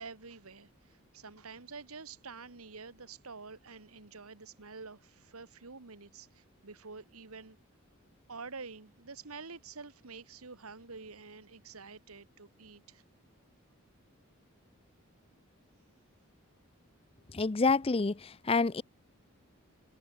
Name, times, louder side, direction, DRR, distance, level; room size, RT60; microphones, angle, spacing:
voice 1, 0.0-7.6 8.3-13.0, right 4 dB, 90° right, 1.8 m, -48 dB
voice 2, 17.3-18.8, left 4 dB, 25° left, 0.5 m, -28 dB
head